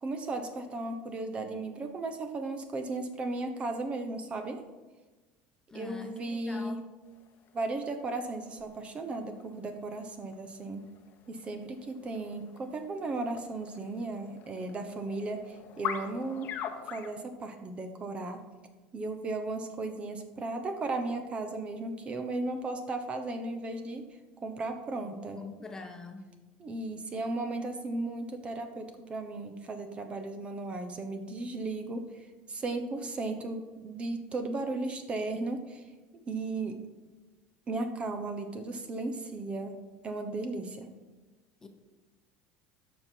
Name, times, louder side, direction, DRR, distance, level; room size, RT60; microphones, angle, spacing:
voice 1, 0.0-4.6 5.7-6.8 7.5-10.8 11.3-16.5 16.9-18.4 18.9-24.0 24.4-25.4 26.6-35.9 36.1-36.8 37.7-40.9, right 2 dB, 30° right, 7 dB, 1.0 m, -35 dB
voice 2, 5.7-6.9 25.0-26.3 41.6-41.7, left 2 dB, 15° left, 4 dB, 1.1 m, -44 dB
sound 1, 7.0-17.1, left 8 dB, 50° left, 1.0 m, -44 dB
13.0 x 5.3 x 4.6 m, 1.2 s
supercardioid pair, 120°, 4 cm